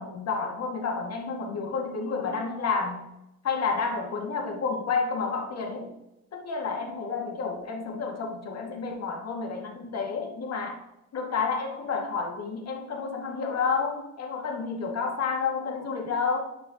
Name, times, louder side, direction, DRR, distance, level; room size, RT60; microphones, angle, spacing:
voice 1, 0.0-3.1 3.4-5.9 6.3-10.9 11.1-16.4, left 5 dB, 55° left, 1 dB, 1.9 m, -30 dB
11.0 x 6.2 x 2.8 m, 0.90 s
cardioid pair, 90°, 30 cm